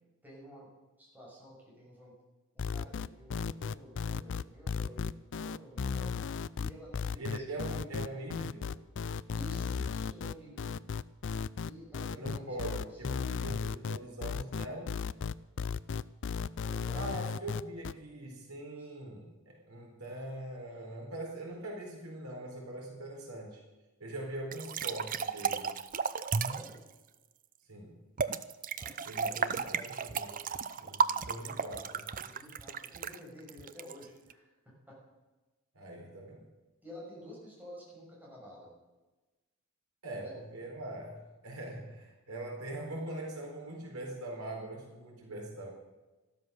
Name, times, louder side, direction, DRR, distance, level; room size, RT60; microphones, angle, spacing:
voice 1, 0.2-0.7 1.0-2.1 2.5-5.1 5.3-6.2 6.5-7.4 9.0-10.8 11.6-13.0 16.6-17.2 18.8-18.9 26.4-26.8 28.8-28.9 29.2-29.4 30.7-30.9 32.2-34.5 34.9-35.0 36.8-38.7 40.2-40.4, equal, 10° right, -5 dB, 6.3 m, -51 dB
sound 1, 2.6-17.9, left 6 dB, 55° left, 0.4 m, -35 dB
voice 2, 7.2-8.8 12.1-14.9 16.9-23.6 24.0-25.7 27.7-28.0 29.0-30.4 30.7-32.1 35.7-36.4 40.0-45.7, right 1 dB, 90° right, 0 dB, 4.3 m, -42 dB
sound 2, 24.5-26.8 28.2-34.3, right 6 dB, 40° right, 0.6 m, -34 dB
13.0 x 13.0 x 6.6 m, 1.1 s
head